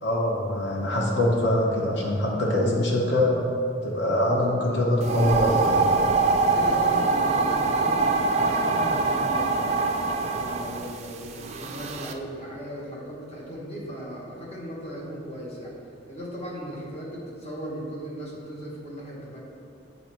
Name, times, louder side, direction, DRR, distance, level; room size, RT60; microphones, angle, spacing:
voice 1, 0.0-3.5 3.8-5.9, left 1 dB, 60° left, -2 dB, 1.1 m, -23 dB
sound 1, 5.0-12.1, right 3 dB, 35° right, 0.3 m, -24 dB
voice 2, 6.4-9.8 10.3-15.7 16.1-19.4, equal, 30° left, -4 dB, 1.2 m, -37 dB
6.8 x 4.2 x 4.4 m, 2.5 s
head